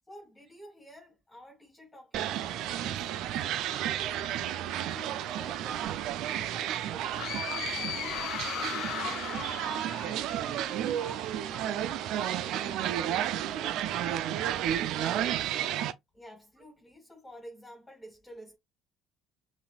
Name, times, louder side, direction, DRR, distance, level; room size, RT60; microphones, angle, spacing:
voice 1, 0.1-4.2 4.8-7.4 16.1-18.6, equal, 20° left, 2.1 m, -51 dB
sound 1, 2.1-15.9, right 11 dB, 70° right, 0.4 m, -32 dB
sound 2, 7.2-10.8, left 12 dB, 65° left, 0.3 m, -37 dB
voice 2, 7.7-9.6 10.0-12.1 12.4-14.1 14.8-15.6, right 3 dB, 35° right, 0.8 m, -49 dB
5.6 x 2.5 x 2.3 m
supercardioid pair, 80°, 0 cm